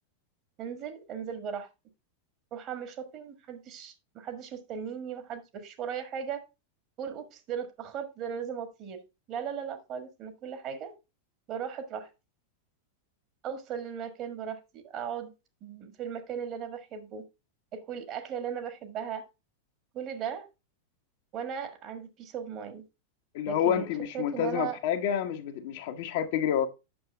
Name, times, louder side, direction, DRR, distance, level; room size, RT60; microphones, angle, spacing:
voice 1, 0.6-1.7 2.5-6.4 7.0-9.0 9.3-10.9 11.5-12.1 13.4-15.3 15.6-17.2 17.7-19.2 19.9-20.5 21.3-22.8 23.5-23.9 24.1-24.8, right 8 dB, 35° right, 1.6 m, -37 dB
voice 2, 23.3-26.7, left 9 dB, 50° left, 1.0 m, -28 dB
8.7 x 6.5 x 3.4 m
figure-of-eight pair, 90°, 0 cm